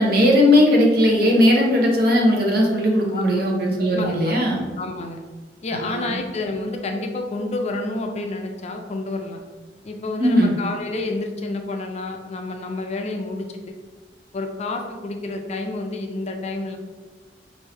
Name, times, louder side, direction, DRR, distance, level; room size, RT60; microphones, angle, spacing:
voice 1, 0.0-4.6 5.7-6.0 10.2-10.5, left 1 dB, 60° right, -1 dB, 0.8 m, -18 dB
voice 2, 3.9-4.4 4.8-5.2 5.6-9.4 9.8-13.7 14.3-16.8, left 2 dB, 40° left, 3 dB, 0.4 m, -29 dB
4.4 x 2.6 x 3.3 m, 1.4 s
head